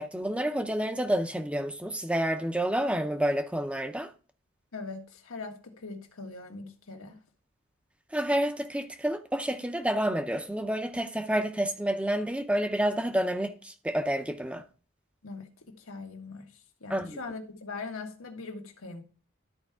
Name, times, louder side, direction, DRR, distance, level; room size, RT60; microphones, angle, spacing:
voice 1, 0.0-4.1 8.1-14.6 16.9-17.2, right 1 dB, 5° right, 0.6 m, -29 dB
voice 2, 4.7-7.2 15.2-16.5 16.8-19.0, left 3 dB, 85° left, 1.5 m, -41 dB
12.5 x 4.6 x 3.5 m
head